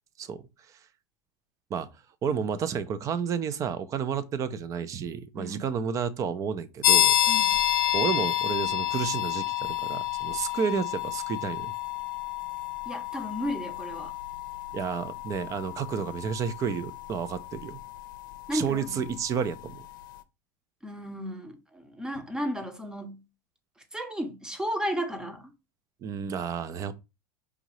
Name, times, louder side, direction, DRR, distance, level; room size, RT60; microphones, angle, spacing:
voice 1, 2.2-7.1 7.9-11.7 14.7-17.8 18.5-19.8 26.0-26.9, right 7 dB, 30° right, 0.5 m, -31 dB
voice 2, 5.4-5.7 7.3-7.6 12.9-14.1 18.5-18.9 20.8-23.2 23.9-25.5, equal, 5° right, 0.8 m, -34 dB
sound 1, 6.8-19.4, left 13 dB, 85° left, 0.5 m, -29 dB
4.9 x 2.7 x 3.1 m
supercardioid pair, 120°, 10 cm